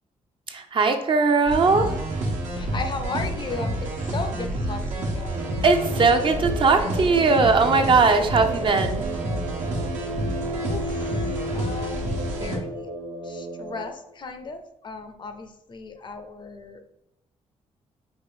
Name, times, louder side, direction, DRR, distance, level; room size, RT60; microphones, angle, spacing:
voice 1, 0.5-1.9 5.6-9.1, right 4 dB, 45° right, 6 dB, 0.5 m, -19 dB
sound 1, 1.5-12.6, right 1 dB, 80° right, 1.1 m, -29 dB
voice 2, 2.5-5.4 10.7-12.9 13.2-16.8, left 4 dB, 40° left, 8 dB, 0.5 m, -36 dB
sound 2, 5.3-13.8, right 1 dB, 65° right, 1.3 m, -34 dB
5.1 x 2.5 x 3.6 m, 0.83 s
cardioid pair, 105°, 12 cm